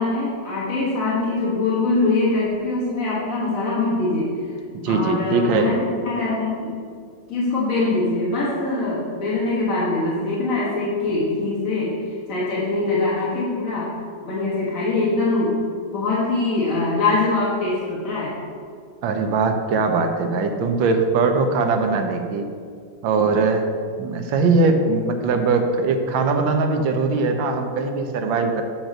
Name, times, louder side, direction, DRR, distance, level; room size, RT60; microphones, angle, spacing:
voice 1, 0.0-4.3 4.9-6.8 7.3-13.9 14.2-15.6 15.9-18.4, left 3 dB, 45° left, -8 dB, 1.7 m, -23 dB
voice 2, 4.8-5.7 19.0-22.4 23.0-23.7 24.0-28.6, right 4 dB, 75° right, 5 dB, 1.4 m, -21 dB
8.8 x 3.0 x 6.4 m, 2.2 s
omnidirectional pair, 2.1 m